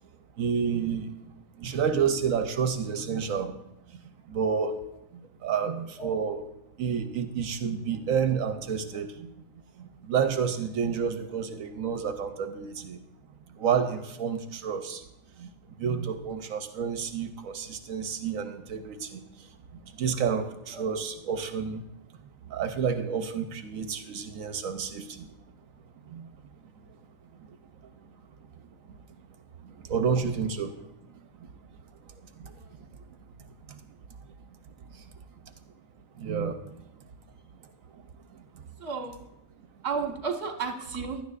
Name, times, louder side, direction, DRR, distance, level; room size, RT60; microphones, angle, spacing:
voice 1, 0.4-1.2 1.5-3.6 3.9-4.8 5.1-6.4 6.8-9.3 9.7-13.0 13.5-15.1 15.4-21.8 22.4-25.3 26.0-26.3 26.8-26.9 27.3-28.1 28.6-28.7 29.1-29.2 29.6-31.5 31.9-33.2 33.7-34.0 34.8-35.5 36.1-36.9 37.6-38.0 38.3-38.6 39.8-39.9, right 6 dB, 80° right, 8 dB, 1.2 m, -31 dB
voice 2, 38.8-39.2 39.8-41.2, right 5 dB, 50° right, 3 dB, 1.6 m, -33 dB
16.0 x 12.0 x 2.5 m, 0.89 s
omnidirectional pair, 1.4 m